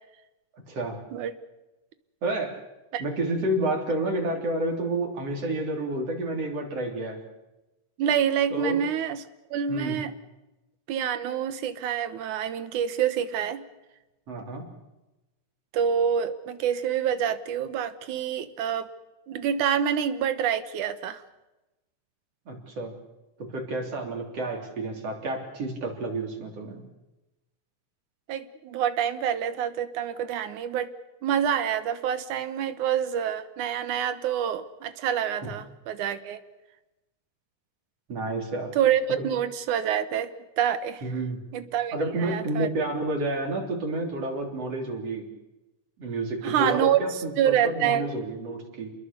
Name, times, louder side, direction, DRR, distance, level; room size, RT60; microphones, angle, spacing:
voice 1, 0.7-1.0 2.2-2.5 3.0-7.2 8.5-8.8 9.7-10.0 14.3-14.7 22.5-23.0 23.4-26.8 35.4-35.5 38.1-38.8 39.1-39.2 41.0-41.4 41.9-45.3 46.0-48.9, right 2 dB, 50° right, 2 dB, 4.4 m, -30 dB
voice 2, 8.0-9.2 9.5-10.1 10.9-13.6 15.7-18.9 19.3-21.2 28.3-30.9 31.2-36.4 38.8-40.3 40.6-41.0 41.5-42.7 46.4-48.0, right 9 dB, 75° right, 11 dB, 2.6 m, -27 dB
28.5 x 21.5 x 6.8 m, 1.0 s
omnidirectional pair, 3.5 m